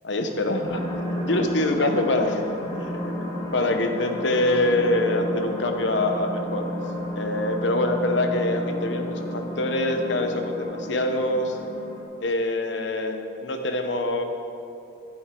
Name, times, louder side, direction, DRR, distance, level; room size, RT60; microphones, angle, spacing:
voice 1, 0.0-0.9 1.2-6.7 7.1-11.6 12.2-14.2, left 1 dB, 80° left, 5 dB, 1.0 m, -25 dB
sound 1, 0.6-12.0, left 1 dB, 20° left, 1.6 m, -32 dB
12.0 x 10.0 x 3.8 m, 2.7 s
head